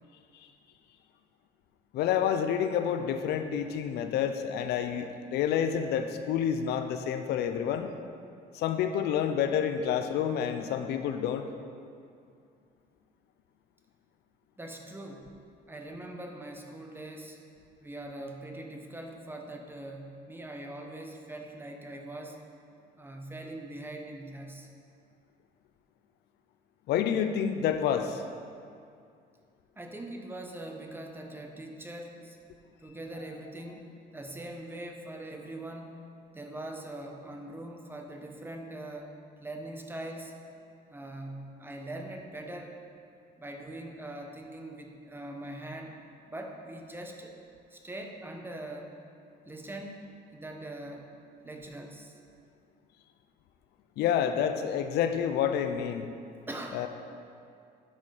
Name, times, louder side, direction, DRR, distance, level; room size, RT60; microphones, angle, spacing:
voice 1, 1.9-7.9 8.5-11.4 26.9-28.2 54.0-56.1 56.7-56.9, left 8 dB, 75° left, 8 dB, 0.5 m, -28 dB
voice 2, 14.6-15.3 15.7-17.4 17.8-22.4 23.0-24.7 29.8-32.4 32.8-33.9 34.1-36.0 36.3-39.1 39.4-40.3 40.9-42.8 43.4-46.0 46.3-47.3 47.7-48.9 49.5-50.1 50.3-51.1 51.4-52.1 56.5-56.8, right 1 dB, 10° right, 2 dB, 0.8 m, -42 dB
10.5 x 4.2 x 4.9 m, 2.4 s
cardioid pair, 110°, 17 cm